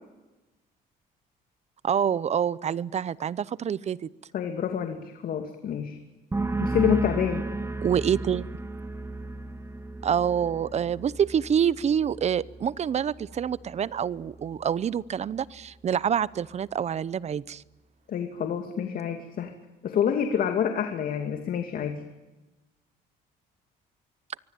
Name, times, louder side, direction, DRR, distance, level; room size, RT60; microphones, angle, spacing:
voice 1, 1.8-4.0 7.8-8.5 10.0-17.6, right 8 dB, 40° right, 20 dB, 0.8 m, -26 dB
voice 2, 4.3-6.0 6.6-7.4 18.1-19.5 19.8-22.0, left 8 dB, 55° left, 6 dB, 2.5 m, -27 dB
sound 1, 6.3-13.8 14.1-14.6, right 2 dB, 15° right, 1.7 m, -34 dB
24.5 x 23.5 x 9.2 m, 1.1 s
cardioid pair, 110°, 17 cm